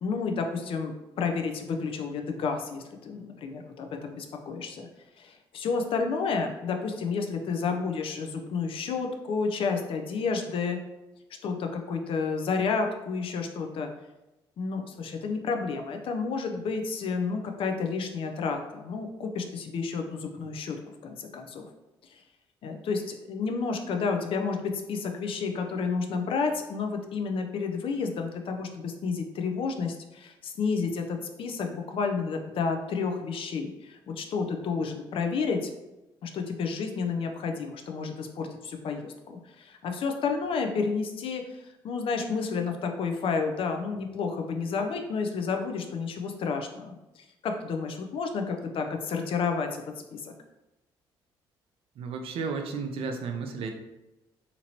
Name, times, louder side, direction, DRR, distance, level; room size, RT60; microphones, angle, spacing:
voice 1, 0.0-4.9 5.2-10.8 11.4-13.9 14.6-20.8 21.0-21.7 22.6-35.7 36.2-41.4 41.8-49.8 50.1-50.3, left 5 dB, 60° left, 4 dB, 0.5 m, -31 dB
voice 2, 52.0-53.7, right 4 dB, 65° right, 4 dB, 0.5 m, -33 dB
2.9 x 2.6 x 2.8 m, 0.99 s
hypercardioid pair, 55°, 10 cm